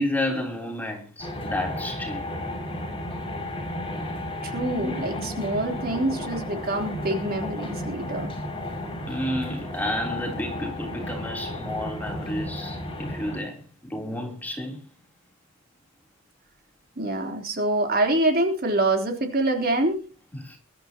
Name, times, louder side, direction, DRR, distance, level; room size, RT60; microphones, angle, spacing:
voice 1, 0.0-2.3 4.8-5.1 9.1-14.8 20.3-20.6, left 1 dB, 10° left, 3.4 m, -31 dB
sound 1, 1.2-13.4, left 1 dB, 25° left, 6.2 m, -33 dB
voice 2, 4.4-8.3 17.0-20.0, right 2 dB, 45° right, 3.5 m, -25 dB
22.0 x 13.0 x 2.9 m
head